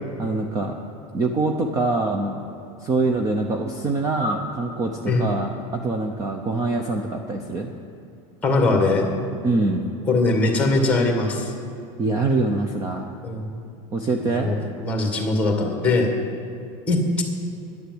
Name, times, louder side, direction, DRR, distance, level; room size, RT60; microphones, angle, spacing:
voice 1, 0.2-0.7 1.1-2.4 2.8-5.5 5.8-7.7 9.4-9.8 12.0-13.1 13.9-14.6, right 3 dB, 20° right, 4 dB, 0.6 m, -24 dB
voice 2, 8.4-9.1 10.1-11.5 13.2-13.6 14.2-16.1 16.9-17.2, left 2 dB, 10° left, 3 dB, 1.7 m, -21 dB
10.5 x 10.0 x 7.8 m, 2.8 s
supercardioid pair, 170°, 18 cm